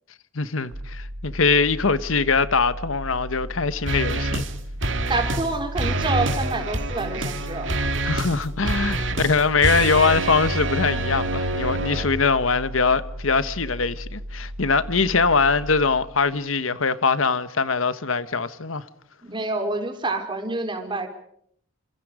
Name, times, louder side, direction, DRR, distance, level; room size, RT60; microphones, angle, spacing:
voice 1, 0.3-4.4 8.0-18.8, left 4 dB, 85° left, 1.3 m, -22 dB
sound 1, 0.7-16.5, equal, 80° right, 2.1 m, -36 dB
sound 2, 3.9-4.5 4.8-5.5 5.8-12.1, right 2 dB, 65° right, 2.5 m, -26 dB
voice 2, 5.1-7.7 19.2-21.1, right 2 dB, 25° right, 4.1 m, -27 dB
29.0 x 27.0 x 5.0 m
head